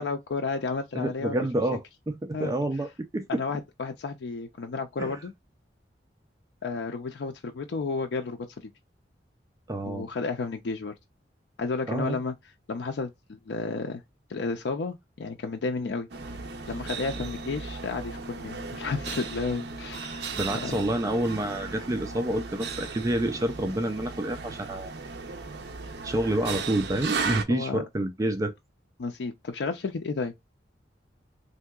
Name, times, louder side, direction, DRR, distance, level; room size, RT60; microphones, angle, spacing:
voice 1, 0.0-1.5 2.3-2.5 3.3-5.3 6.6-8.7 9.9-11.0 11.6-12.3 12.7-14.0 14.3-16.1 16.7-20.2 20.6-20.8 27.5-27.8 29.0-30.3, left 4 dB, 75° left, 0.4 m, -32 dB
voice 2, 0.9-3.4 5.0-5.2 9.7-10.1 11.9-12.2 20.4-24.9 26.0-28.5, right 1 dB, 20° right, 0.3 m, -28 dB
sound 1, 16.1-27.5, right 4 dB, 70° right, 0.6 m, -36 dB
3.5 x 2.7 x 2.3 m
head